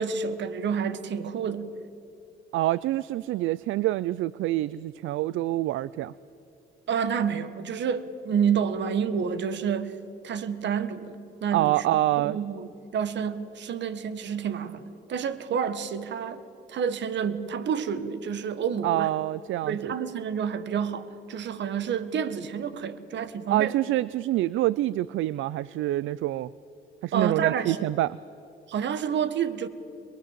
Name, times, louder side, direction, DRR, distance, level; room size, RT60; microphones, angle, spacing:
voice 1, 0.0-1.7 6.9-10.0 10.2-11.8 12.2-19.1 19.6-23.7 27.1-27.9 28.7-29.7, right 7 dB, 65° right, 12 dB, 1.6 m, -29 dB
voice 2, 2.5-6.1 11.5-12.4 18.8-19.9 23.5-26.5 27.0-28.2, right 15 dB, 80° right, 20 dB, 0.5 m, -26 dB
23.5 x 22.5 x 7.5 m, 2.8 s
cardioid pair, 90°, 20 cm